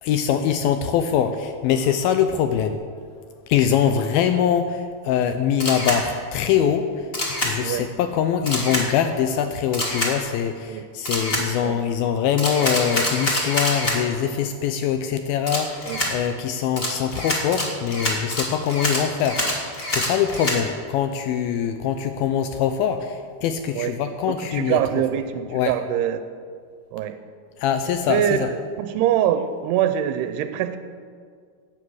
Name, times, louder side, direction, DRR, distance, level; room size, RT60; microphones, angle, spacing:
voice 1, 0.0-2.8 3.5-24.8 25.5-25.7 27.6-28.5, left 8 dB, 80° left, 8 dB, 2.3 m, -23 dB
Camera, 5.6-6.0 7.1-7.5 8.5-8.8 9.7-10.1 11.0-11.4 12.4-14.0 15.5-16.1 16.8-20.6, left 1 dB, 30° left, 1.0 m, -25 dB
voice 2, 24.3-26.2 26.9-27.2 28.1-30.8, right 10 dB, 90° right, 10 dB, 2.7 m, -24 dB
16.5 x 9.6 x 6.2 m, 2.1 s
omnidirectional pair, 4.6 m